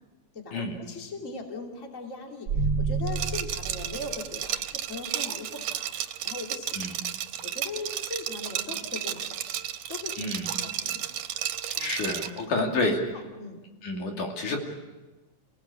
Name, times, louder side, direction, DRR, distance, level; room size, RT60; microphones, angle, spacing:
voice 1, 0.3-6.0 6.2-6.8 7.4-9.6 9.9-10.3 10.6-11.1 11.7-11.9 12.4-12.5 13.1-13.6, left 3 dB, 25° left, 2 dB, 3.0 m, -39 dB
sound 1, 2.5-4.7, right 4 dB, 45° right, 1.6 m, -30 dB
Liquid, 3.1-12.4, right 11 dB, 75° right, 2.4 m, -33 dB
voice 2, 10.2-10.5 11.8-13.0 13.8-14.6, left 2 dB, 75° left, 1 dB, 4.2 m, -29 dB
29.0 x 18.0 x 8.4 m, 1.2 s
omnidirectional pair, 3.6 m